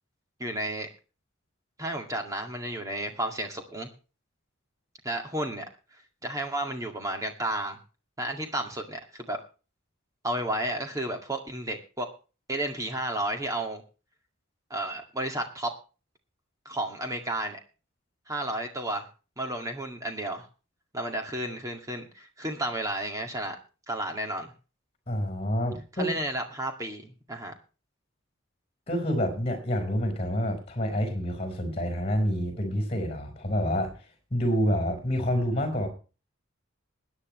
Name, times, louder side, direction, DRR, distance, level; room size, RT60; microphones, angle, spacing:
voice 1, 0.4-0.9 1.8-3.9 5.0-5.6 5.9-7.8 8.2-9.4 10.2-12.1 12.5-13.8 14.7-15.7 16.7-17.6 18.3-19.1 19.4-20.5 20.9-23.6 23.9-24.5 26.0-27.5, right 1 dB, 15° right, 3 dB, 2.1 m, -32 dB
voice 2, 25.1-26.1 28.9-33.9 34.3-35.9, equal, 30° left, 6 dB, 4.7 m, -28 dB
21.0 x 9.9 x 3.2 m, 0.34 s
head